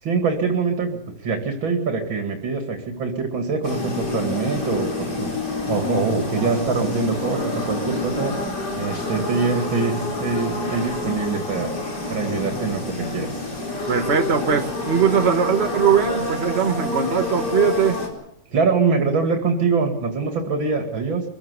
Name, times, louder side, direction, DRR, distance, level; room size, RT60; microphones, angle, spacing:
voice 1, 0.0-5.3 5.7-8.3 8.7-11.7 12.1-13.4 18.5-21.2, right 4 dB, 85° right, 4 dB, 3.2 m, -24 dB
sound 1, 3.6-18.1, left 2 dB, 55° left, 4.6 m, -28 dB
voice 2, 13.9-18.0, right 7 dB, 35° right, 6 dB, 1.6 m, -20 dB
24.0 x 15.5 x 8.3 m, 0.83 s
omnidirectional pair, 2.1 m